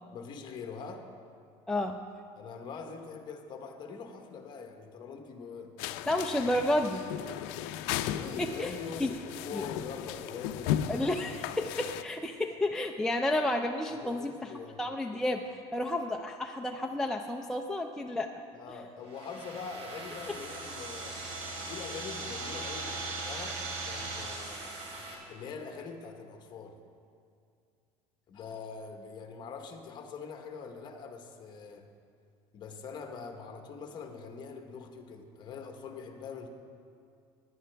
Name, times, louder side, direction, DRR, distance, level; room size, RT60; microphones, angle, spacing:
voice 1, 0.1-1.1 2.4-5.8 8.0-10.9 11.3-11.4 13.9-14.8 18.5-21.2 21.6-24.8 25.3-26.8 28.3-31.9 32.5-36.5, left 5 dB, 40° left, 5 dB, 1.1 m, -43 dB
voice 2, 1.7-2.0 6.1-7.1 8.4-8.7 9.0-9.1 9.5-9.6 10.9-14.5 14.8-15.4 15.7-18.4 20.3-20.4, left 1 dB, 5° left, 2 dB, 0.4 m, -31 dB
sound 1, 5.8-12.0, left 11 dB, 80° left, 0.5 m, -36 dB
sound 2, 19.0-25.1, right 3 dB, 80° right, 2.8 m, -39 dB
15.5 x 11.0 x 3.4 m, 2.4 s
cardioid pair, 145°, 12 cm